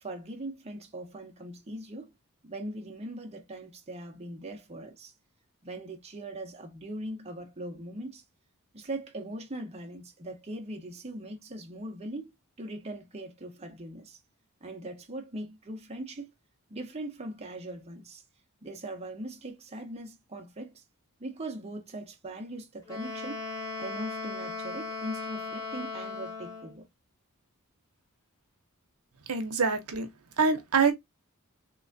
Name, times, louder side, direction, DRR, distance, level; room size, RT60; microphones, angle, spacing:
voice 1, 0.0-2.1 2.4-5.1 5.6-8.2 8.7-12.3 12.6-14.2 14.6-16.3 16.7-18.2 18.6-20.8 21.2-23.4 23.8-26.9, right 1 dB, 30° right, 0.8 m, -40 dB
Wind instrument woodwind instrument, 22.9-26.8, left 4 dB, 15° left, 1.6 m, -37 dB
voice 2, 29.3-30.1 30.4-30.9, right 5 dB, 80° right, 0.8 m, -25 dB
3.3 x 3.0 x 2.5 m
head